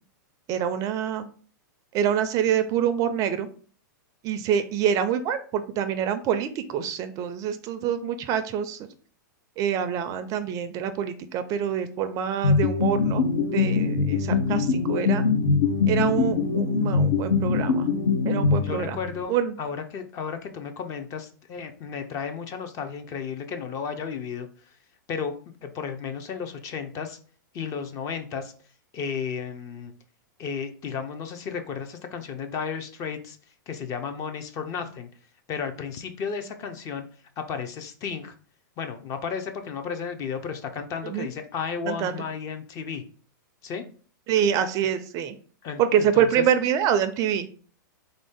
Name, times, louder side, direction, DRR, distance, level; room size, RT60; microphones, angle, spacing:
voice 1, 0.5-1.3 1.9-3.5 4.2-8.9 9.6-13.2 13.5-15.2 15.9-17.9 18.3-19.0 19.3-19.5 41.0-41.3 41.9-42.2 44.3-45.3 45.8-47.5, right 9 dB, 35° right, 11 dB, 0.4 m, -26 dB
sound 1, 12.4-19.1, left 4 dB, 70° left, 0.8 m, -23 dB
voice 2, 18.6-19.3 19.6-24.5 25.1-25.3 25.6-27.2 27.5-28.5 28.9-29.9 30.4-33.4 33.7-35.1 35.5-37.0 37.4-38.3 38.8-43.0 43.6-43.8 45.6-46.5, left 6 dB, 35° left, 7 dB, 0.5 m, -33 dB
3.7 x 2.6 x 3.5 m, 0.43 s
hypercardioid pair, 125°, 11 cm